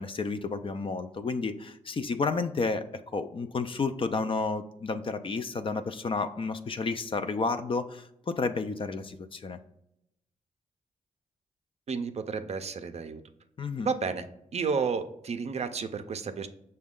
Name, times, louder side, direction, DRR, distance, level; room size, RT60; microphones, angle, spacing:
voice 1, 0.0-9.6 13.6-13.9, left 4 dB, 40° left, 9 dB, 0.4 m, -31 dB
voice 2, 11.9-13.2 13.8-14.2 14.5-16.5, right 5 dB, 50° right, 9 dB, 0.5 m, -31 dB
6.0 x 2.2 x 3.6 m, 0.80 s
cardioid pair, 70°, 14 cm